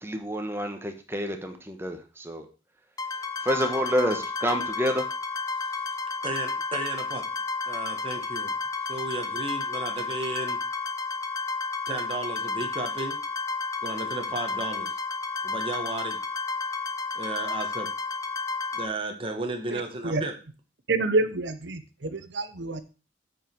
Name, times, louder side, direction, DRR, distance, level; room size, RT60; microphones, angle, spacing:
voice 1, 0.0-2.4 3.4-5.1, equal, 15° right, 5 dB, 1.1 m, -28 dB
sound 1, 3.0-18.9, left 4 dB, 20° left, 0.8 m, -32 dB
voice 2, 6.2-7.3 7.7-8.5 8.9-10.6 11.9-13.2 13.8-14.9 15.4-16.2 17.1-17.9 18.7-20.4, right 2 dB, 30° right, 4 dB, 1.4 m, -33 dB
voice 3, 19.7-20.2 20.9-22.8, right 3 dB, 75° right, 11 dB, 0.9 m, -28 dB
8.9 x 5.0 x 4.5 m, 0.34 s
head